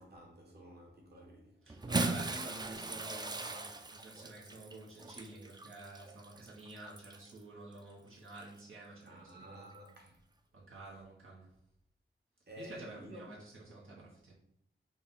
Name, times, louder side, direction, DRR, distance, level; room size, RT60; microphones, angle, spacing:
voice 1, 0.0-2.1 9.0-10.2 12.5-13.3, equal, 50° right, 1.0 m, -52 dB
Bathtub (filling or washing) / Splash splatter, 1.7-7.4 8.3-8.4 9.9-10.0, right 3 dB, 20° right, 0.3 m, -39 dB
voice 2, 1.7-9.7 10.5-11.5 12.6-14.3, right 2 dB, 85° right, 0.9 m, -50 dB
3.8 x 2.1 x 3.9 m
wide cardioid pair, 60°, 21 cm